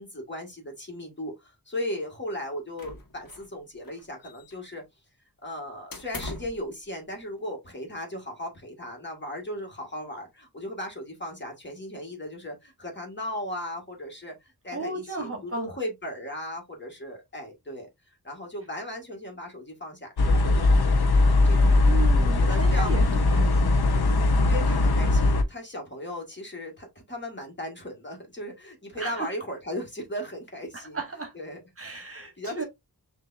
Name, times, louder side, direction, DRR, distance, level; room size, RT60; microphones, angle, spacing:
voice 1, 0.0-4.8 5.4-21.7 22.2-22.9 24.5-31.0 31.3-31.6 32.4-32.7, left 1 dB, 30° left, 1.8 m, -37 dB
sound 1, 2.8-3.6 3.8-4.8 5.9-6.6, left 2 dB, 60° left, 1.4 m, -40 dB
voice 2, 14.7-15.7 21.8-23.8 28.9-29.3 30.7-31.3 31.8-32.6, right 3 dB, 35° right, 1.2 m, -35 dB
sound 2, 20.2-25.4, left 2 dB, 80° left, 0.8 m, -20 dB
6.6 x 2.7 x 2.6 m
wide cardioid pair, 120°, 38 cm